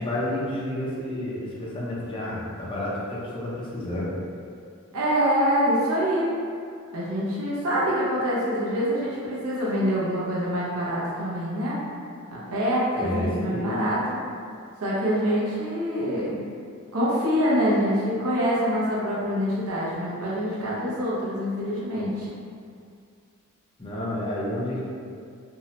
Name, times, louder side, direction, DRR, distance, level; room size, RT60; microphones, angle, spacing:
voice 1, 0.0-4.2 13.0-13.7 23.8-24.8, left 1 dB, 25° left, -6 dB, 0.5 m, -30 dB
voice 2, 4.9-6.3 6.9-11.8 12.3-14.0 14.8-16.4 16.9-22.3, equal, 80° right, -7 dB, 0.6 m, -25 dB
2.7 x 2.0 x 2.8 m, 2.3 s
head